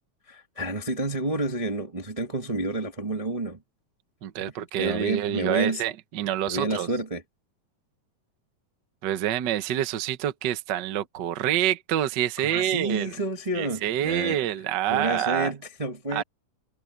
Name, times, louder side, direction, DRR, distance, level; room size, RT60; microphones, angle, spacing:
voice 1, 0.3-3.6 4.8-5.8 6.5-7.2 12.4-14.4 14.9-16.2, right 1 dB, 45° right, 0.4 m, -29 dB
voice 2, 4.2-6.9 9.0-13.1 13.5-15.5 16.1-16.2, right 11 dB, 80° right, 0.9 m, -27 dB
omnidirectional pair, 3.7 m